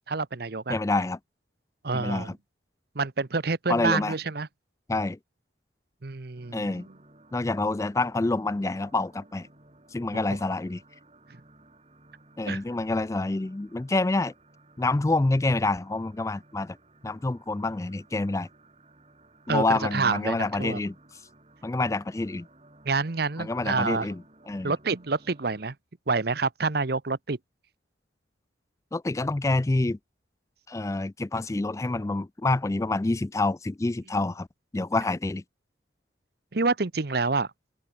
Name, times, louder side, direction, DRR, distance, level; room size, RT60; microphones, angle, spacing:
voice 1, 0.1-0.8 1.8-2.3 2.9-4.5 6.0-6.8 12.5-12.6 19.5-19.6 19.9-20.8 22.8-24.1 24.6-25.7 26.1-27.4 36.5-37.5, right 4 dB, 55° right, 0.9 m, -27 dB
voice 2, 0.7-1.2 1.9-2.4 3.7-4.1 4.9-5.2 6.5-6.9 7.3-9.5 9.9-10.8 12.4-14.3 14.8-16.8 17.0-18.5 19.5-21.2 21.6-22.5 23.4-24.7 28.9-30.0 30.7-34.5 34.7-35.4, left 2 dB, 15° left, 0.3 m, -27 dB
sound 1, 6.3-25.7, right 2 dB, 30° right, 4.2 m, -57 dB
open air
head